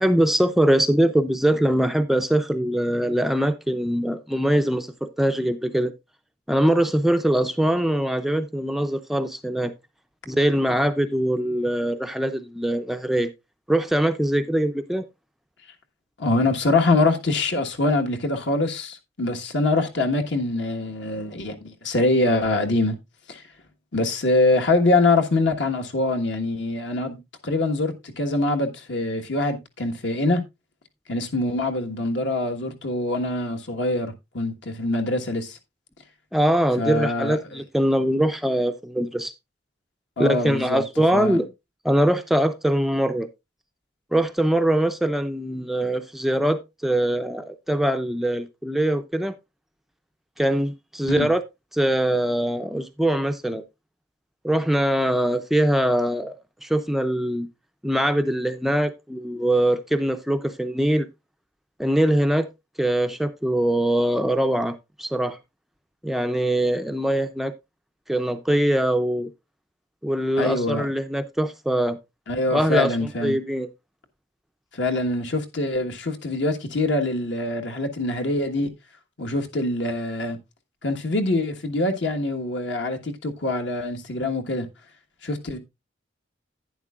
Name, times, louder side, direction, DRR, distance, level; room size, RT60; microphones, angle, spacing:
voice 1, 0.0-5.9 6.5-9.7 10.3-13.3 13.7-15.1 36.3-39.3 40.2-41.5 41.8-43.3 44.1-49.3 50.4-51.4 51.7-53.6 54.4-56.3 56.6-57.5 57.8-61.1 61.8-62.5 62.8-65.4 66.0-67.5 68.1-69.3 70.0-72.0 72.5-72.9 73.2-73.7, right 1 dB, ahead, 0.4 m, -22 dB
voice 2, 16.2-22.9 23.3-23.5 23.9-30.4 31.1-35.6 36.8-37.6 40.2-40.8 41.1-41.4 51.0-51.3 70.4-70.9 72.3-73.4 74.7-78.7 79.2-80.4 80.8-84.7 85.2-85.6, left 2 dB, 65° left, 1.4 m, -24 dB
11.0 x 9.5 x 2.4 m
head